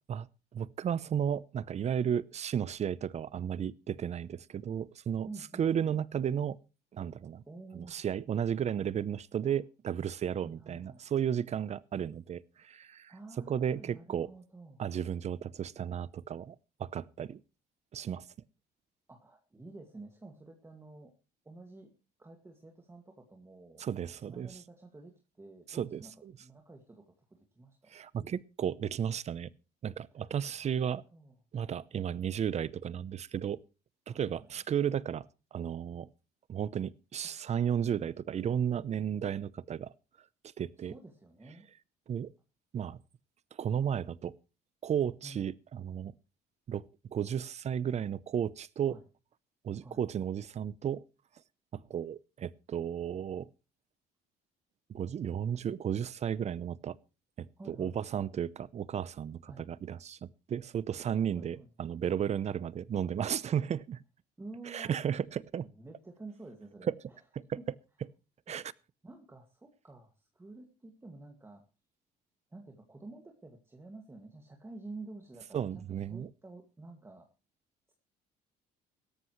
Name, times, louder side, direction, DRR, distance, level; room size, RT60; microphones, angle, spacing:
voice 1, 0.5-5.3 5.6-6.6 6.9-7.4 7.7-13.1 13.5-14.3 14.8-17.4 17.9-18.3 23.8-24.6 25.7-26.3 27.9-29.5 29.8-31.0 31.5-33.6 34.1-35.2 35.5-36.1 36.5-39.9 40.6-40.9 42.1-42.3 42.7-43.0 43.6-44.4 44.8-46.1 46.7-49.0 49.6-51.0 51.7-53.5 54.9-57.0 57.4-64.0 64.7-65.7 66.9-67.0 68.5-68.7 75.5-76.3, right 8 dB, 40° right, 0.7 m, -34 dB
voice 2, 5.2-6.0 7.5-8.0 9.5-9.6 10.4-11.0 13.1-14.8 19.1-21.1 21.4-21.9 22.2-23.8 24.2-28.0 30.1-30.8 31.1-31.3 34.1-34.6 37.2-37.3 40.8-41.7 45.2-45.5 48.8-49.0 49.8-50.0 57.6-58.0 59.5-59.7 61.3-61.7 64.4-65.1 65.6-67.2 67.6-67.7 68.5-68.6 69.0-71.6 72.5-77.3, right 2 dB, 15° right, 2.1 m, -50 dB
17.0 x 13.5 x 3.1 m
cardioid pair, 110°, 17 cm